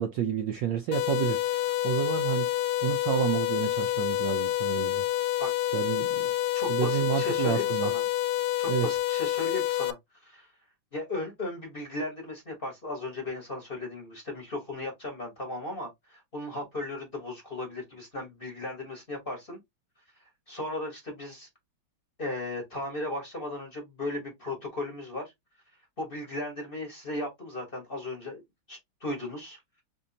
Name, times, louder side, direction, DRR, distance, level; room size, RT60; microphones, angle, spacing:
voice 1, 0.0-5.0 5.7-6.3 6.7-7.9 8.7-8.9, right 10 dB, 75° right, 1.0 m, -30 dB
sound 1, 0.9-9.9, left 15 dB, 80° left, 1.4 m, -28 dB
voice 2, 6.5-8.0 8.6-10.5 10.9-19.6 20.5-21.5 22.2-25.2 26.0-28.4 28.7-29.6, left 2 dB, 30° left, 1.2 m, -36 dB
4.1 x 3.6 x 2.7 m
omnidirectional pair, 2.4 m